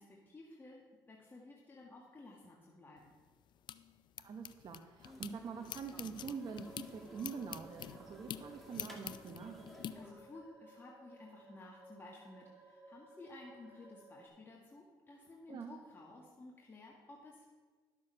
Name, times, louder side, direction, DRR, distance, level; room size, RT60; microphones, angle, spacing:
voice 1, 0.0-3.1 9.9-17.4, left 2 dB, 25° left, -2 dB, 1.6 m, -54 dB
sound 1, 3.0-5.3 5.6-9.9, left 10 dB, 60° left, 0.5 m, -47 dB
voice 2, 4.2-9.6 15.5-15.7, right 5 dB, 50° right, 4 dB, 0.9 m, -45 dB
sound 2, 5.0-10.1, left 1 dB, 5° left, 2.0 m, -57 dB
sound 3, 6.2-14.3, right 2 dB, 20° right, 2.5 m, -59 dB
12.0 x 6.9 x 5.5 m, 1.5 s
cardioid pair, 95°, 9 cm